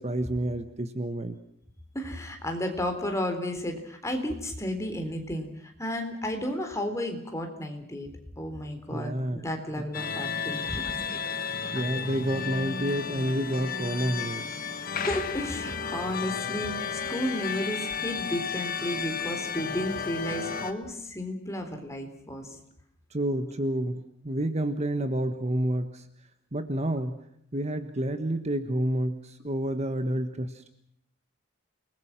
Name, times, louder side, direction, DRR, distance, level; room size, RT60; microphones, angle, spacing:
voice 1, 0.0-1.4 8.9-9.4 9.7-9.8 11.7-14.4 23.1-26.0 26.5-27.2 27.5-30.7, right 1 dB, 35° right, 9 dB, 1.4 m, -29 dB
voice 2, 1.9-5.5 5.8-8.1 8.4-10.8 15.0-22.6, left 1 dB, 15° left, 4 dB, 3.8 m, -33 dB
sound 1, 9.9-20.7, left 6 dB, 45° left, 1.6 m, -33 dB
29.5 x 20.5 x 6.1 m, 0.73 s
head